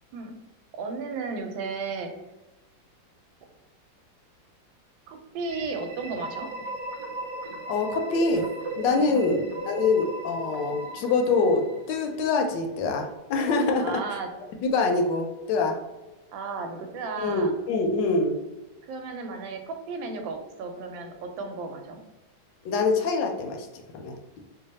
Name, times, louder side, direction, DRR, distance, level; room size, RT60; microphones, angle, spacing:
voice 1, 0.7-2.1 5.1-6.5 9.0-9.4 13.8-14.3 16.3-17.5 18.8-22.0, right 4 dB, 90° right, 5 dB, 1.4 m, -34 dB
sound 1, 5.4-12.2, right 2 dB, 60° right, 0.9 m, -36 dB
voice 2, 7.7-8.5 8.8-14.0 14.6-15.8 17.2-18.4 22.6-24.2, left 3 dB, 75° left, 4 dB, 1.2 m, -25 dB
3.2 x 2.2 x 4.0 m, 1.1 s
omnidirectional pair, 2.0 m